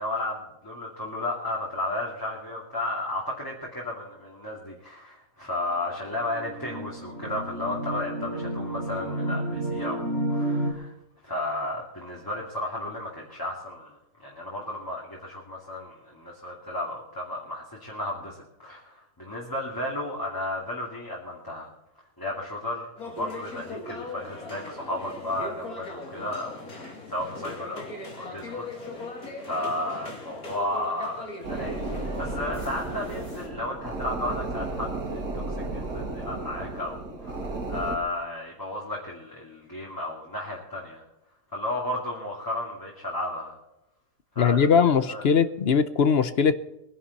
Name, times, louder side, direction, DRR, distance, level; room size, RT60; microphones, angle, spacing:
voice 1, 0.0-10.9 11.2-21.7 22.2-26.6 27.1-41.0 41.5-43.5 44.3-45.2, left 1 dB, 15° left, -3 dB, 2.5 m, -33 dB
sound 1, 6.0-10.7, right 1 dB, 50° right, 2.2 m, -31 dB
sound 2, 23.0-33.5, left 2 dB, 70° left, 3.1 m, -39 dB
sound 3, 31.4-38.0, right 2 dB, 75° right, 2.5 m, -33 dB
voice 2, 44.4-46.5, left 6 dB, 50° left, 13 dB, 0.8 m, -20 dB
22.0 x 11.0 x 4.2 m, 0.92 s
omnidirectional pair, 1.6 m